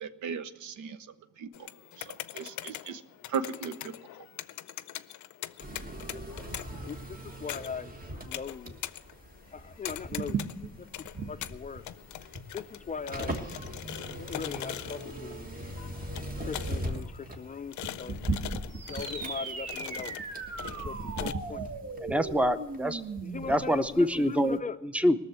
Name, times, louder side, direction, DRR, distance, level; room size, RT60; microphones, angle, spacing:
voice 1, 0.0-1.0 1.4-1.5 2.1-3.0 3.3-3.9, right 6 dB, 75° right, 11 dB, 0.8 m, -36 dB
sound 1, 1.5-21.3, left 13 dB, 75° left, 0.6 m, -43 dB
sound 2, 5.6-24.2 24.5-24.6, right 2 dB, 30° right, 1.5 m, -39 dB
voice 2, 6.8-7.9 8.3-8.8 9.5-11.8 12.5-13.4 14.2-15.5 16.4-18.2 18.7-20.1 20.8-22.0 22.8-22.9 23.2-24.8, left 5 dB, 25° left, 11 dB, 0.4 m, -40 dB
sound 3, 18.7-23.7, right 4 dB, 55° right, 1.3 m, -39 dB
voice 3, 22.0-23.0 23.5-24.6 24.8-25.2, equal, 5° right, 12 dB, 0.7 m, -25 dB
18.5 x 6.9 x 8.0 m, 0.95 s
cardioid pair, 90°, 30 cm